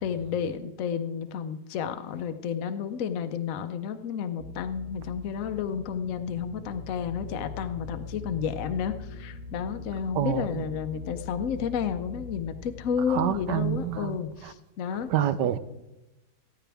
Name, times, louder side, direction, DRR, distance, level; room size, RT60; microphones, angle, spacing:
voice 1, 0.0-15.1, left 7 dB, 60° left, 1.0 m, -31 dB
sound 1, 4.4-14.0, left 4 dB, 55° right, 2.0 m, -42 dB
voice 2, 13.1-14.2 15.1-15.6, right 11 dB, 80° right, 1.3 m, -26 dB
16.0 x 14.0 x 3.5 m
omnidirectional pair, 1.9 m